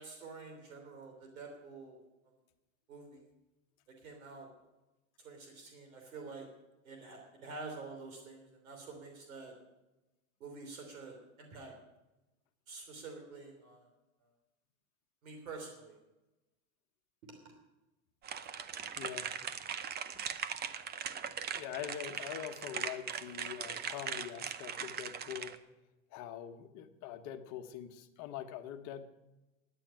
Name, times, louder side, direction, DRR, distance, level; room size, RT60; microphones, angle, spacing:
voice 1, 0.0-2.0 2.9-3.3 4.0-4.5 5.2-6.4 6.8-9.5 10.4-11.7 12.7-13.9 15.2-16.0, right 4 dB, 85° right, 3 dB, 3.3 m, -48 dB
sound 1, 18.2-25.6, right 8 dB, 25° right, 0.7 m, -40 dB
voice 2, 19.0-19.3 21.5-25.6 26.1-29.0, left 10 dB, 45° left, 7 dB, 1.3 m, -44 dB
10.5 x 9.1 x 8.9 m, 1.0 s
hypercardioid pair, 115°, 41 cm